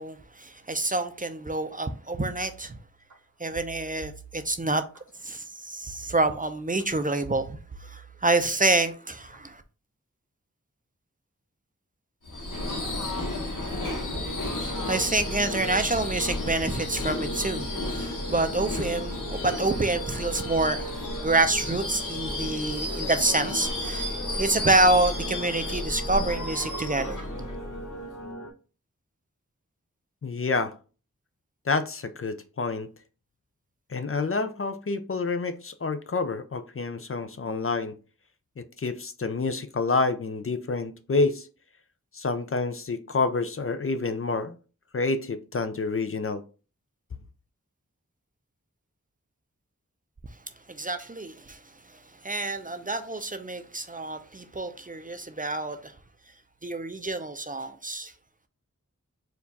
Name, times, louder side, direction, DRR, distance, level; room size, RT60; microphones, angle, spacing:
voice 1, 0.0-2.8 3.4-4.8 5.2-9.6 14.4-24.1 24.4-27.2 50.7-51.6 52.2-55.9 56.6-58.1, right 2 dB, 25° right, 0.4 m, -27 dB
sound 1, 2.2-3.1 3.5-5.0 5.9-6.8 7.2-8.7 9.1-9.5, right 5 dB, 70° right, 0.8 m, -47 dB
Subway metro underground / Screech, 12.2-28.2, left 1 dB, 90° left, 1.0 m, -33 dB
sound 2, 14.1-28.5, right 1 dB, 65° left, 1.4 m, -40 dB
voice 2, 30.2-30.7 31.7-32.9 33.9-37.9 38.6-41.5 42.1-44.6 44.9-46.4, left 3 dB, 45° left, 0.4 m, -28 dB
4.4 x 2.4 x 3.9 m
wide cardioid pair, 45°, 31 cm